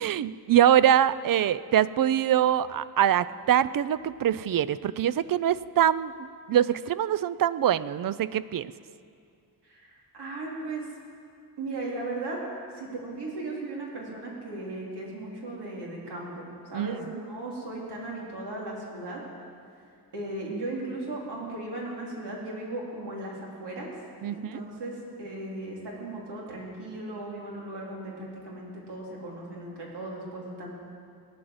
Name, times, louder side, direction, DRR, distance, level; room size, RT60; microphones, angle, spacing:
voice 1, 0.0-8.7 16.7-17.0 24.2-24.6, right 10 dB, 60° right, 17 dB, 0.5 m, -24 dB
voice 2, 9.6-10.9 11.6-12.4 12.7-16.4 16.7-19.2 20.1-23.9 24.3-30.7, right 2 dB, 90° right, -3 dB, 3.9 m, -37 dB
17.5 x 10.5 x 7.9 m, 2.4 s
wide cardioid pair, 145°, 39 cm